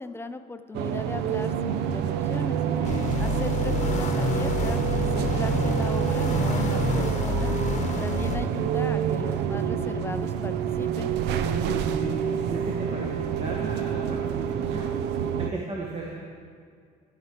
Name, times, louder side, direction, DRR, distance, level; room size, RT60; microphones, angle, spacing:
voice 1, 0.0-2.6 3.2-7.5 8.0-11.1, left 3 dB, 15° left, 9 dB, 0.4 m, -37 dB
sound 1, 0.7-15.5, right 8 dB, 85° right, 0.5 m, -27 dB
voice 2, 2.7-3.1 11.4-14.9 15.4-16.2, right 3 dB, 35° right, -2 dB, 1.3 m, -35 dB
sound 2, 2.8-8.4, left 4 dB, 45° left, 1.0 m, -29 dB
sound 3, 4.2-10.1, right 2 dB, 55° right, 2.1 m, -45 dB
14.0 x 4.9 x 4.5 m, 2.2 s
cardioid pair, 110°, 17 cm